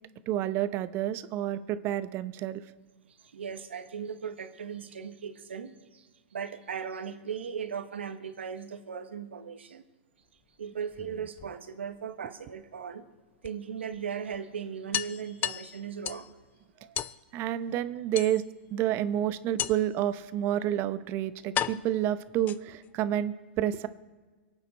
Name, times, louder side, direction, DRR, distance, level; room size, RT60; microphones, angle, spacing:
voice 1, 0.3-2.6 17.3-18.4 18.7-23.9, right 11 dB, 40° right, 13 dB, 0.8 m, -29 dB
voice 2, 3.3-9.8 10.6-13.0 13.4-16.4 16.8-17.0, right 7 dB, 90° right, 8 dB, 1.4 m, -38 dB
sound 1, 10.8-12.0 13.4-13.5 13.9-14.0 14.3-14.4 14.9-16.3 16.9-17.2 18.1-18.7 19.6-20.0 20.8-20.9 21.5-22.9, left 11 dB, 30° left, 0.5 m, -34 dB
24.0 x 9.0 x 4.2 m, 1.4 s
hypercardioid pair, 120°, 6 cm